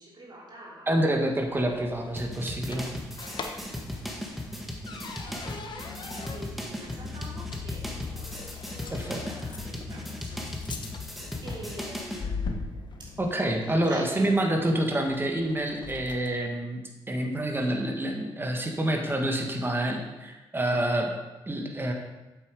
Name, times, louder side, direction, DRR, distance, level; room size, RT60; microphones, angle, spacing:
voice 1, 0.0-1.0 3.5-10.9 11.4-13.2 13.7-14.8, right 1 dB, 50° right, -4 dB, 3.3 m, -45 dB
voice 2, 0.9-2.9 8.9-9.2 13.2-21.1 21.5-21.9, right 1 dB, 25° right, 2 dB, 1.8 m, -27 dB
sound 1, 1.3-16.4, left 4 dB, 55° left, 1.2 m, -42 dB
sound 2, 2.2-12.3, equal, ahead, 1.7 m, -37 dB
sound 3, 5.2-13.3, left 8 dB, 70° left, 0.9 m, -43 dB
8.0 x 7.8 x 5.1 m, 1.1 s
cardioid pair, 65°, 9 cm